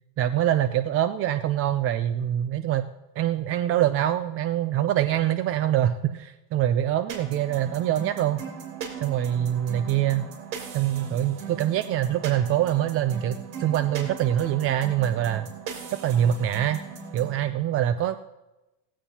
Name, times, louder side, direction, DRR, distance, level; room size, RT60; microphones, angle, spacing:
voice 1, 0.2-8.4 9.0-10.3 10.7-15.5 16.0-16.8 17.1-18.2, right 11 dB, 30° right, 10 dB, 0.4 m, -24 dB
sound 1, 7.1-17.4, right 5 dB, 75° right, 3.5 m, -39 dB
17.5 x 16.0 x 2.8 m, 1.0 s
cardioid pair, 145°, 46 cm